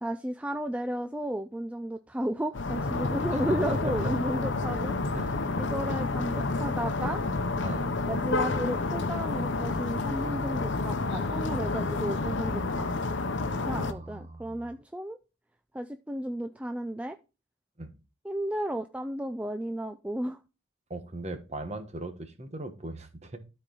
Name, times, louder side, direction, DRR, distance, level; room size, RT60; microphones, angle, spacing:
voice 1, 0.0-4.9 5.6-7.2 8.1-12.9 13.7-15.2 15.7-17.2 18.2-20.4, right 1 dB, 5° right, 0.3 m, -33 dB
sound 1, 2.5-13.9, left 3 dB, 65° left, 0.8 m, -29 dB
voice 2, 3.3-4.1 5.1-5.4 7.6-8.1 13.7-14.7 17.8-18.0 20.9-23.4, right 2 dB, 35° right, 1.2 m, -38 dB
13.0 x 4.5 x 3.9 m
head